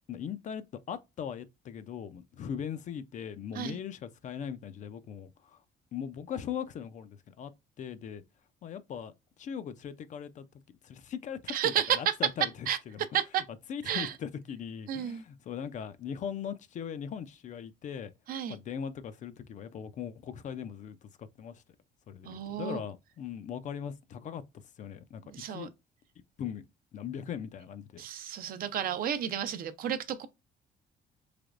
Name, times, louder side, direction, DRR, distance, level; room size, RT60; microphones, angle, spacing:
voice 1, 0.1-5.6 5.9-7.5 7.8-8.2 8.6-9.1 9.4-10.5 10.8-13.0 13.7-18.1 18.5-21.6 22.1-24.4 24.8-25.7 26.4-26.6 26.9-28.0, left 8 dB, 45° left, 0.5 m, -39 dB
voice 2, 11.5-12.1 12.7-12.8 13.1-13.4 13.9-14.1 14.9-15.2 18.3-18.6 22.3-22.8 25.3-25.7 28.0-30.3, right 10 dB, 60° right, 0.6 m, -31 dB
3.3 x 3.0 x 2.4 m
cardioid pair, 110°, 17 cm